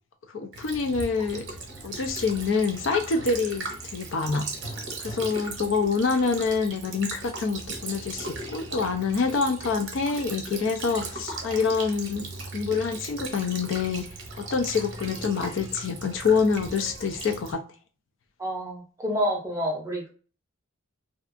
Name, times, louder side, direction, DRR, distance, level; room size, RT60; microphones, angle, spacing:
voice 1, 0.3-1.4 1.8-4.5 5.0-12.3 12.5-14.1 14.4-17.6, left 5 dB, 60° left, 6 dB, 0.4 m, -26 dB
Child speech kid speaking / Bird vocalization bird call bird song / Stream, 0.5-17.5, right 3 dB, 55° right, 0.7 m, -38 dB
voice 2, 18.4-20.1, equal, 15° right, -1 dB, 0.6 m, -28 dB
2.6 x 2.3 x 2.5 m, 0.39 s
head